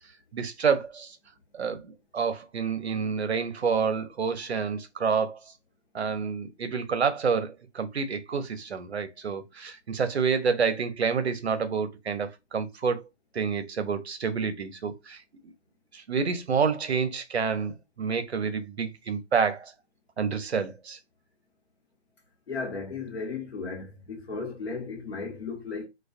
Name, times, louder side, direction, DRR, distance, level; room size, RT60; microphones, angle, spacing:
voice 1, 0.3-1.2 1.5-5.4 5.9-13.0 13.3-15.2 15.9-19.7 20.2-21.0, right 6 dB, 60° right, 0.6 m, -28 dB
voice 2, 22.5-25.9, left 4 dB, 55° left, 1.1 m, -35 dB
2.3 x 2.2 x 2.4 m
figure-of-eight pair, 165°, 37 cm